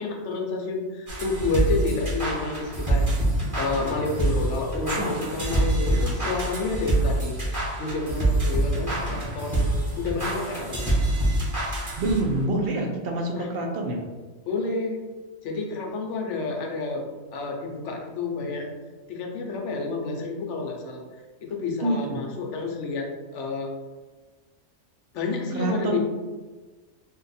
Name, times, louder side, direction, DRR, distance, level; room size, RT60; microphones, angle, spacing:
voice 1, 0.0-3.1 3.5-9.7 9.9-10.9 13.3-13.5 14.5-15.0 15.4-17.0 17.3-18.7 19.1-21.0 21.4-23.1 23.3-23.7 25.1-26.0, left 3 dB, 65° left, 1 dB, 0.9 m, -29 dB
sound 1, 1.1-12.4, right 1 dB, 15° right, 1.0 m, -26 dB
voice 2, 12.0-14.0 21.8-22.2 25.5-26.0, right 2 dB, 65° right, 1 dB, 0.6 m, -26 dB
2.6 x 2.4 x 4.0 m, 1.3 s
omnidirectional pair, 1.4 m